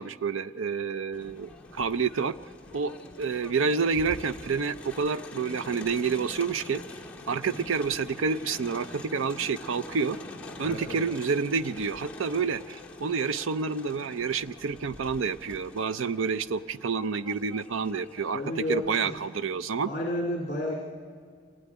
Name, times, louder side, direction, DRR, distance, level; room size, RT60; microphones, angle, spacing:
voice 1, 0.0-2.3 2.7-2.9 3.2-6.8 7.3-10.2 10.6-18.4 18.7-19.9, right 5 dB, 80° right, 13 dB, 0.6 m, -29 dB
Crowd, 1.1-19.4, left 2 dB, 5° left, 2.0 m, -45 dB
voice 2, 7.3-7.6 10.6-11.0 18.3-19.2 19.8-20.7, left 1 dB, 40° left, 0 dB, 2.5 m, -32 dB
26.5 x 17.0 x 9.6 m, 2.1 s
head